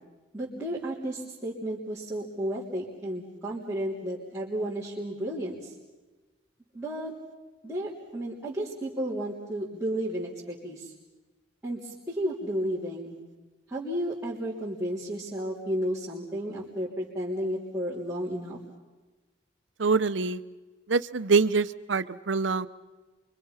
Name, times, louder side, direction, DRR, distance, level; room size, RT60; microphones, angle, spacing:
voice 1, 0.3-5.7 6.7-7.1 7.6-10.9 11.6-13.2 13.7-18.6, equal, 5° right, -10 dB, 3.4 m, -33 dB
voice 2, 19.8-20.4 20.9-22.7, right 4 dB, 75° right, 13 dB, 0.8 m, -25 dB
28.5 x 25.0 x 5.7 m, 1.2 s
head